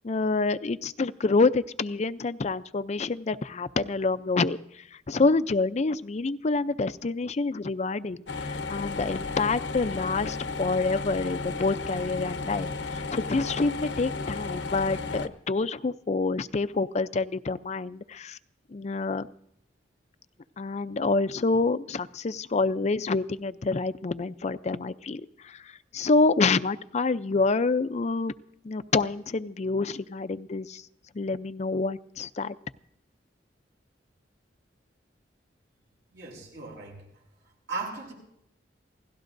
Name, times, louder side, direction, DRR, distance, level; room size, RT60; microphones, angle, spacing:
voice 1, 0.0-18.4 18.7-19.3 20.6-28.3 28.6-30.8 31.1-32.6, left 3 dB, 40° left, 12 dB, 0.5 m, -27 dB
sound 1, 8.3-15.3, left 3 dB, 85° left, 1.0 m, -34 dB
voice 2, 36.1-37.1 37.7-38.1, right 3 dB, 70° right, -1 dB, 7.9 m, -37 dB
29.0 x 17.0 x 2.6 m, 0.77 s
head